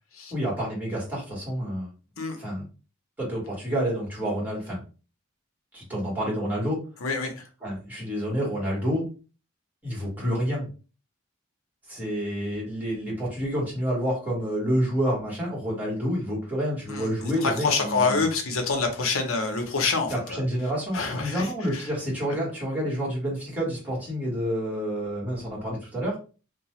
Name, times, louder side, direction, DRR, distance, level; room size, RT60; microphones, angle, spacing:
voice 1, 0.3-1.9 2.4-2.6 3.2-4.8 5.7-6.8 7.6-9.1 9.8-10.7 11.9-18.2 20.1-26.2, equal, 10° right, 1.5 m, -28 dB
voice 2, 7.0-7.4 16.9-17.1 17.4-20.4 20.9-21.9, left 4 dB, 85° left, 0.7 m, -26 dB
2.7 x 2.1 x 3.0 m
head